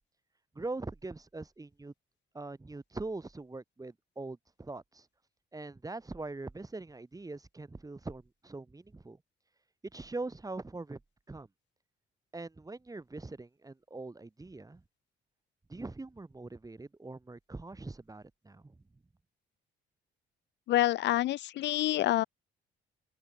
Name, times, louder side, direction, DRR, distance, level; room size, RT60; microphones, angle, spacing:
voice 1, 0.6-1.9 2.3-5.1 5.5-9.2 9.9-11.0 11.3-11.5 12.3-14.8 15.7-18.7, right 3 dB, 15° right, 2.2 m, -42 dB
voice 2, 20.7-22.2, left 15 dB, 65° left, 0.4 m, -27 dB
open air
cardioid pair, 90°, 20 cm